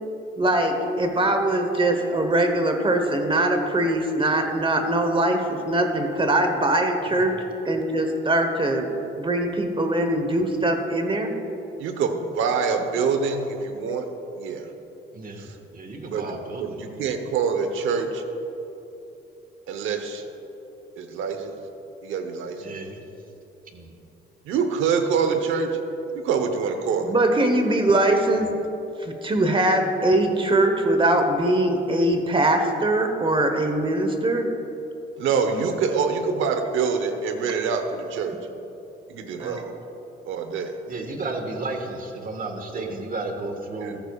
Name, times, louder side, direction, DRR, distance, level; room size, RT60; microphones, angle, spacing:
voice 1, 0.4-7.3 7.6-8.9 9.2-11.3 27.1-28.5 29.0-34.5 39.4-39.7, right 1 dB, 25° right, 5 dB, 1.1 m, -22 dB
voice 2, 11.8-14.1 14.4-14.7 15.4-15.6 16.0-18.2 19.7-20.2 21.0-21.5 22.0-22.6 24.4-25.8 26.1-27.1 35.2-38.3 39.1-39.6 40.3-40.7 42.7-42.9 43.8-44.0, right 5 dB, 85° right, 7 dB, 1.0 m, -25 dB
voice 3, 15.1-17.1 22.6-23.0 23.7-23.9 40.9-44.0, right 2 dB, 45° right, 4 dB, 1.6 m, -33 dB
14.5 x 14.0 x 2.4 m, 3.0 s
cardioid pair, 90°, 20 cm